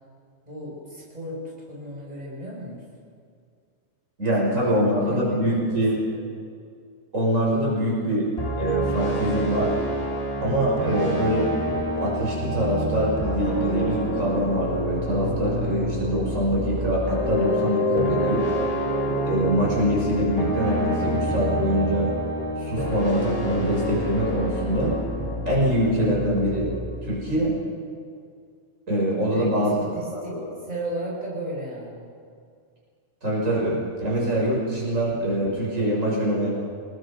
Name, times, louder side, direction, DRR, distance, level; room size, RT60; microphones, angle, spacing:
voice 1, 0.4-2.9 4.6-5.8 6.1-6.3 29.3-29.5 29.9-32.1, right 1 dB, 30° right, -4 dB, 6.4 m, -35 dB
voice 2, 4.2-6.0 7.1-8.3 8.6-9.7 10.4-11.5 12.0-18.5 19.2-22.1 22.6-24.9 25.5-26.7 27.0-27.6 28.9-29.8 30.1-30.5 33.2-36.5, right 1 dB, 70° right, -5 dB, 6.7 m, -24 dB
sound 1, 8.4-27.6, equal, 25° left, 3.2 m, -28 dB
29.0 x 20.5 x 5.3 m, 2.2 s
omnidirectional pair, 1.4 m